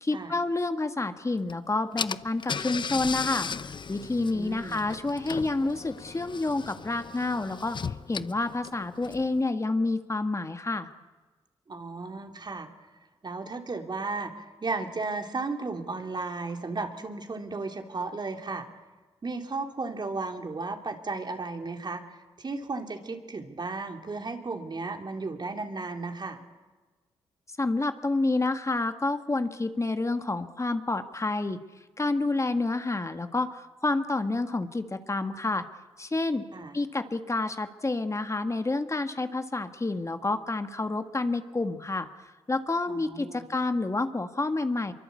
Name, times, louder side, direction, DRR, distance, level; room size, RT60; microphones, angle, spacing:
voice 1, 0.0-3.5 3.9-10.9 27.6-31.6 32.0-35.7 36.0-36.5 36.7-42.1 42.5-44.9, left 2 dB, 30° left, 8 dB, 1.8 m, -29 dB
Car / Engine, 1.5-1.6 2.0-9.4, left 6 dB, 50° left, 0.8 m, -36 dB
voice 2, 4.3-4.8 11.7-12.7 13.2-18.7 19.2-26.4 36.5-36.8 42.9-43.4, right 3 dB, 45° right, 5 dB, 3.4 m, -34 dB
24.0 x 23.0 x 8.5 m, 1.3 s
supercardioid pair, 50°, 10 cm